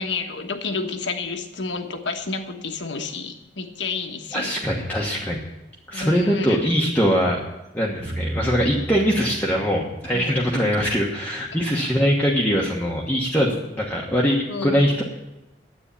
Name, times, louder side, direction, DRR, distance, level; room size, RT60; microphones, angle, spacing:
voice 1, 0.0-4.5 5.9-6.6 10.1-10.3 14.5-14.9, left 3 dB, 75° left, 5 dB, 1.3 m, -30 dB
voice 2, 4.3-5.5 5.9-7.4 7.7-15.0, equal, 10° left, -3 dB, 1.3 m, -22 dB
sound 1, 8.0-11.1, right 1 dB, 50° right, 1.7 m, -34 dB
10.0 x 8.7 x 8.4 m, 0.97 s
head